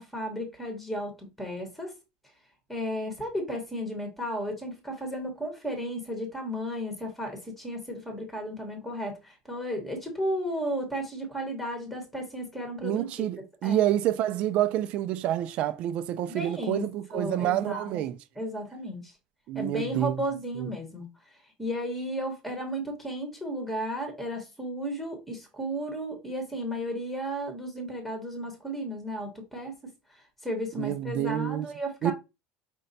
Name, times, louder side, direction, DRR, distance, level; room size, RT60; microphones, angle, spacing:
voice 1, 0.0-1.9 2.7-13.3 13.6-13.8 16.3-18.0 18.3-19.1 19.5-32.1, equal, 5° left, 1.0 m, -34 dB
voice 2, 12.8-18.1 19.5-20.1 20.6-20.7 30.8-31.7 32.0-32.1, right 12 dB, 40° right, 0.3 m, -28 dB
5.2 x 2.2 x 3.9 m
cardioid pair, 170°, 3 cm